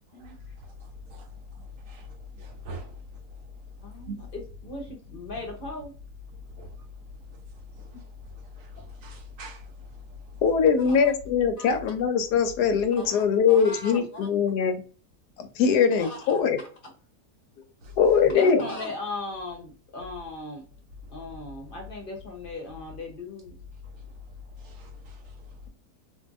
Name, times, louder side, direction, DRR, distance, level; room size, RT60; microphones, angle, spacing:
voice 1, 0.1-3.2 4.1-4.2 6.6-6.9 7.3-10.4 17.8-18.0 23.8-23.9 24.6-25.6, left 1 dB, 70° right, 0.8 m, -43 dB
voice 2, 3.8-5.9 10.8-11.1 11.6-11.8 13.0-14.3 16.0-16.4 18.2-20.6 21.1-23.6, left 2 dB, 45° left, 0.7 m, -38 dB
voice 3, 10.4-14.8 15.4-16.6 18.0-18.6, left 6 dB, 90° left, 1.2 m, -22 dB
2.6 x 2.5 x 2.4 m
omnidirectional pair, 1.7 m